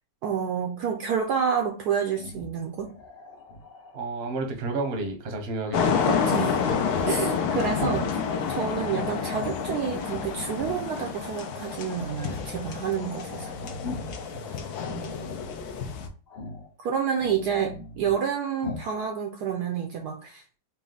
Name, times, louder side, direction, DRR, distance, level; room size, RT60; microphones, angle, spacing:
voice 1, 0.2-2.9 6.1-6.5 7.0-8.2 8.5-13.5 14.9-15.1 16.8-20.4, right 7 dB, 70° right, 3 dB, 1.0 m, -29 dB
Growling, 2.1-4.1 6.5-8.2 8.5-9.4 10.0-10.9 11.3-12.3 12.7-12.8 13.0-14.3 14.8-15.6 16.3-16.7 17.0-18.3 18.6-18.9, left 2 dB, 50° left, 0.5 m, -40 dB
voice 2, 3.9-6.0 14.3-14.9, right 3 dB, 45° right, 4 dB, 0.9 m, -32 dB
sound 1, 5.7-16.1, left 6 dB, 70° left, 1.0 m, -29 dB
sound 2, 7.8-15.8, left 7 dB, 85° left, 1.4 m, -43 dB
4.1 x 2.4 x 3.8 m, 0.37 s
omnidirectional pair, 2.0 m